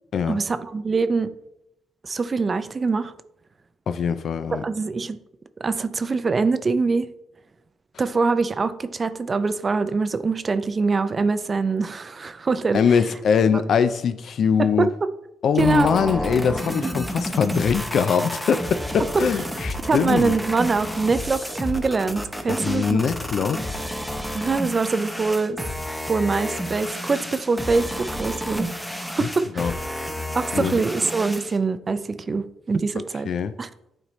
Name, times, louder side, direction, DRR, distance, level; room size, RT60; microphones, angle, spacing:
voice 1, 0.3-1.3 2.0-3.1 4.5-5.2 5.6-7.1 8.0-12.8 13.5-13.6 14.6-15.1 15.6-15.9 16.8-17.0 19.1-19.2 19.9-23.0 24.3-25.6 26.1-28.7 29.2-29.7 30.3-33.3 33.6-33.7, right 4 dB, 35° right, 0.4 m, -23 dB
voice 2, 3.9-4.6 12.7-14.9 15.4-20.3 22.5-23.6 29.2-29.3 29.6-29.7 30.5-30.8 33.3-33.5, left 6 dB, 60° left, 0.4 m, -22 dB
sound 1, 15.6-31.6, equal, ahead, 0.8 m, -31 dB
8.8 x 4.1 x 3.2 m
cardioid pair, 90°, 0 cm